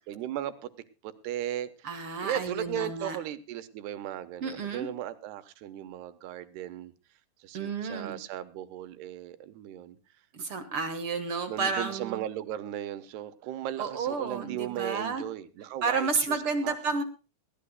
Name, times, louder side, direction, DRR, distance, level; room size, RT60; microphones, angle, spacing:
voice 1, 0.1-0.7 1.0-6.9 7.4-10.0 11.5-16.8, right 12 dB, 85° right, 12 dB, 3.2 m, -37 dB
voice 2, 1.8-3.2 4.4-4.9 7.5-8.2 10.3-12.2 13.8-15.2 15.8-17.0, right 4 dB, 60° right, 7 dB, 1.4 m, -31 dB
21.0 x 16.0 x 2.2 m, 0.32 s
omnidirectional pair, 4.6 m